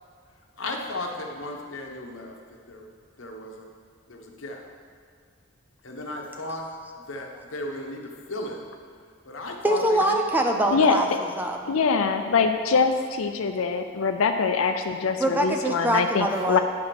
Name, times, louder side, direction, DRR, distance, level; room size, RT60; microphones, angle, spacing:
voice 1, 0.6-2.3 2.7-2.9 3.2-3.7 4.1-4.7 5.8-6.6 7.1-8.6 9.2-10.1, left 2 dB, 70° left, 1 dB, 1.1 m, -35 dB
voice 2, 9.6-11.6 15.2-16.6, right 1 dB, 10° right, 2 dB, 0.6 m, -24 dB
voice 3, 11.7-16.6, left 5 dB, 85° left, 6 dB, 0.5 m, -23 dB
9.4 x 4.9 x 5.9 m, 2.2 s
head